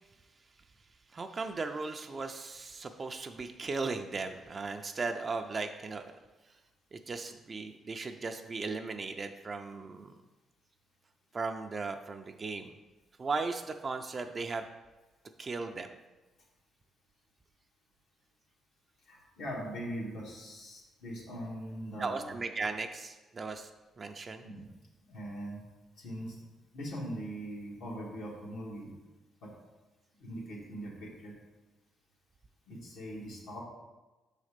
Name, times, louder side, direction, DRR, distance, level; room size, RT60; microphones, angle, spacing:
voice 1, 1.1-6.1 6.9-10.1 11.3-12.7 13.2-14.7 15.4-15.9 22.0-23.7 24.0-24.4, right 4 dB, 35° right, 5 dB, 0.4 m, -37 dB
voice 2, 19.1-22.3 24.4-24.6 25.1-25.6 26.0-26.4 26.7-28.9 29.4-29.5 30.2-31.3 32.7-33.6, equal, 85° left, -5 dB, 1.6 m, -41 dB
5.6 x 4.1 x 5.0 m, 1.2 s
cardioid pair, 90°, 0 cm